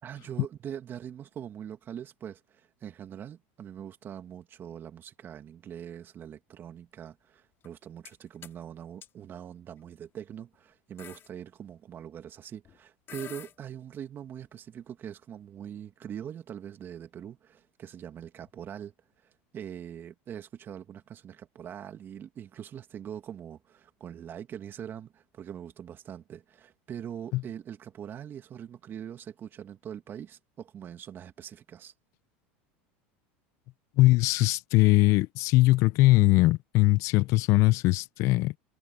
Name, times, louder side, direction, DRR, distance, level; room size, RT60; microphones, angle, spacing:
voice 1, 0.0-18.9 19.2-31.9, right 9 dB, 35° right, 2.1 m, -42 dB
sound 1, 7.6-8.1 8.4-8.6 9.0-9.1 10.0-10.2 10.5-10.6 11.0-11.3 12.7-12.8 13.1-13.5, left 10 dB, 40° left, 3.2 m, -46 dB
voice 2, 34.0-38.5, left 20 dB, 60° left, 1.0 m, -21 dB
supercardioid pair, 105°, 6 cm